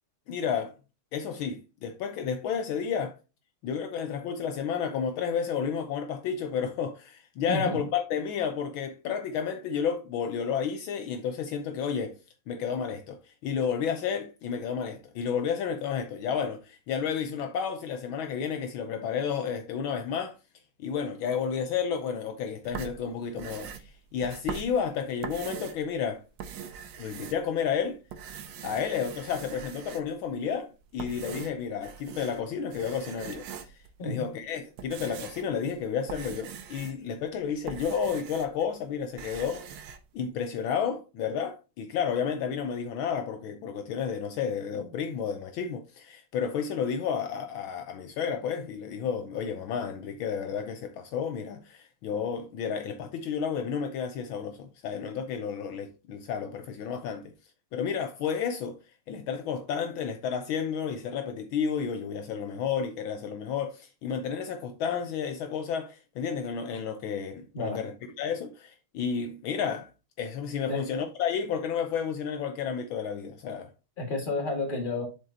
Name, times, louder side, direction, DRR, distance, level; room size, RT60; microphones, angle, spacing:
voice 1, 0.3-0.7 1.1-3.2 3.6-12.1 12.5-20.3 20.8-26.2 27.0-28.0 28.6-39.8 40.1-57.3 57.7-58.8 59.1-69.9 70.2-73.7, left 7 dB, 75° left, 1.4 m, -31 dB
sound 1, 22.6-25.9 26.2-27.7 28.1-30.2 30.8-32.4 32.7-33.9 34.5-38.7 38.9-40.0, right 8 dB, 70° right, 1.4 m, -42 dB
voice 2, 74.0-75.0, left 2 dB, 25° left, 1.9 m, -31 dB
7.4 x 5.3 x 2.8 m
omnidirectional pair, 2.3 m